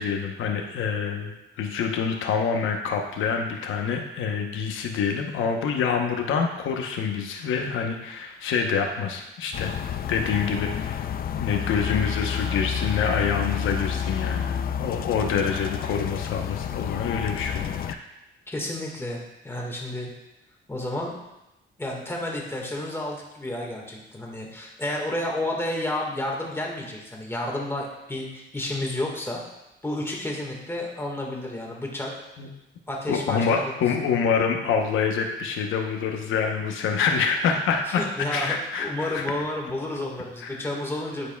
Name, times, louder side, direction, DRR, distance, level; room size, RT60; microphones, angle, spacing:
voice 1, 0.0-9.7 10.1-11.0 11.3-14.5 14.8-18.0 32.4-32.5 33.1-38.0 38.3-39.2 40.4-40.6, left 6 dB, 80° left, 3 dB, 0.9 m, -26 dB
sound 1, 9.5-17.9, left 8 dB, 50° left, 0.4 m, -30 dB
voice 2, 18.5-20.1 20.7-21.2 21.8-29.4 29.8-32.1 32.9-33.7 37.8-41.3, left 1 dB, 10° left, -1 dB, 1.6 m, -31 dB
10.5 x 4.8 x 2.3 m, 0.93 s
cardioid pair, 90°, 20 cm